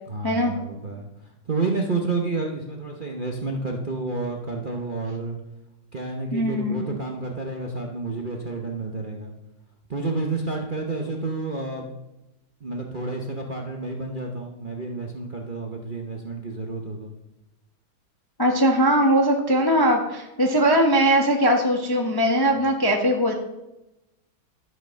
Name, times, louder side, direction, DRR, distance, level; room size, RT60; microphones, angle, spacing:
voice 1, 0.1-5.4 5.9-9.3 9.9-11.9 12.6-17.1 22.5-22.6, right 3 dB, 35° right, 0 dB, 0.8 m, -30 dB
voice 2, 6.3-6.8 18.4-23.3, equal, 20° left, 2 dB, 0.7 m, -20 dB
11.5 x 5.9 x 6.3 m, 0.94 s
omnidirectional pair, 2.2 m